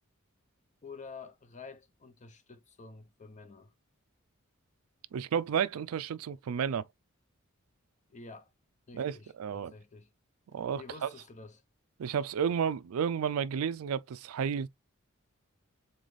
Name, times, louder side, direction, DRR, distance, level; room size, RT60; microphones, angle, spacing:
voice 1, 0.8-3.7 8.1-8.5 8.9-10.1 10.8-11.6, left 4 dB, 35° left, 0.6 m, -49 dB
voice 2, 5.1-6.8 8.9-9.7 10.5-11.1 12.0-14.7, right 7 dB, 80° right, 0.4 m, -32 dB
4.0 x 3.9 x 3.2 m
head